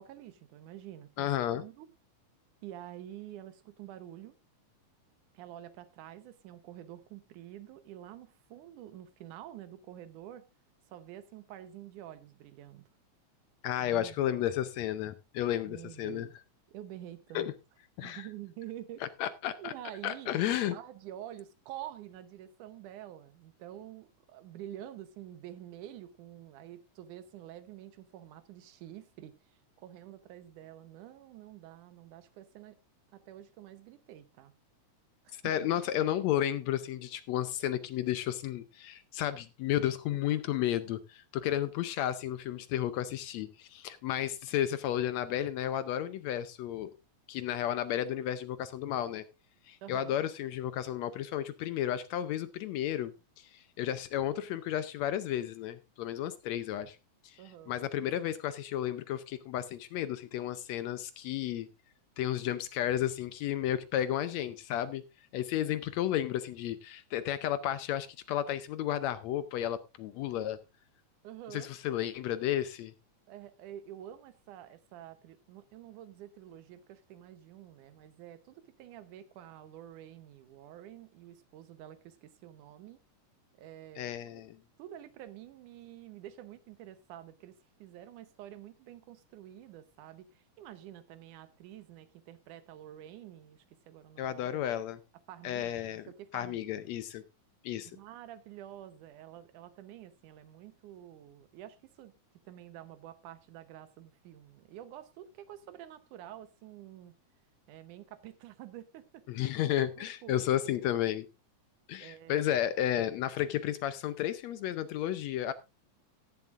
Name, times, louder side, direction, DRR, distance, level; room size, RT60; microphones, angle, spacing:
voice 1, 0.0-1.9 2.6-4.4 5.3-10.4 10.9-12.8 13.8-14.4 15.7-16.3 16.7-17.5 18.0-19.0 19.6-29.3 29.8-32.8 33.1-34.5 35.2-35.4 49.8-50.2 57.4-58.2 65.7-65.8 71.2-71.7 73.3-83.0 83.6-84.4 84.8-94.7 95.3-96.6 97.9-102.1 102.4-107.1 107.7-109.4 110.0-110.7 112.0-112.5, right 12 dB, 85° right, 2.5 m, -48 dB
voice 2, 1.2-1.6 13.6-16.3 17.3-17.5 18.0-18.3 19.0-19.7 20.0-20.7 35.3-46.9 47.3-49.2 49.7-57.0 57.2-61.7 62.2-65.0 65.3-70.6 71.5-72.9 84.0-84.6 94.2-95.0 95.4-96.0 96.3-97.2 97.6-97.9 109.3-111.3 111.9-115.5, left 11 dB, 75° left, 1.8 m, -32 dB
16.0 x 11.0 x 2.5 m
omnidirectional pair, 3.5 m